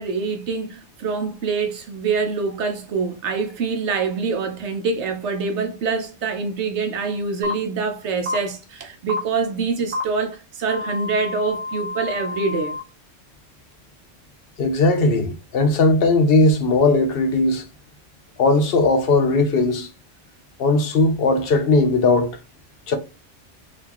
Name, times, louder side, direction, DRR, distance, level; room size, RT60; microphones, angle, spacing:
voice 1, 0.0-12.8, right 4 dB, 70° right, 0.9 m, -25 dB
sound 1, 7.4-7.5 8.3-8.4 9.1-9.2 9.9-10.0 10.7-12.8, left 2 dB, 25° right, 1.1 m, -29 dB
voice 2, 14.6-17.6 18.4-19.9 20.6-22.4 22.9-23.0, left 2 dB, 55° left, 0.9 m, -18 dB
4.2 x 2.5 x 2.9 m
omnidirectional pair, 1.2 m